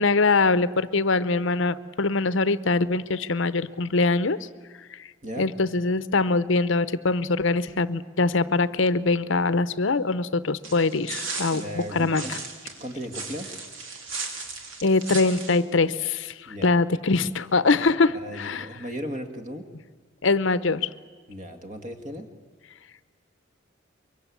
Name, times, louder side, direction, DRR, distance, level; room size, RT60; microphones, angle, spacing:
voice 1, 0.0-4.4 4.9-5.1 5.4-12.4 14.8-18.7 20.2-20.9, left 3 dB, 65° left, 15 dB, 0.8 m, -23 dB
sound 1, 10.6-15.6, right 4 dB, 70° right, 3.3 m, -36 dB
voice 2, 11.5-12.3 12.8-13.5 16.5-16.7 18.1-19.7 21.3-22.3, equal, 35° right, 6 dB, 2.1 m, -36 dB
24.0 x 23.5 x 8.5 m, 1.5 s
head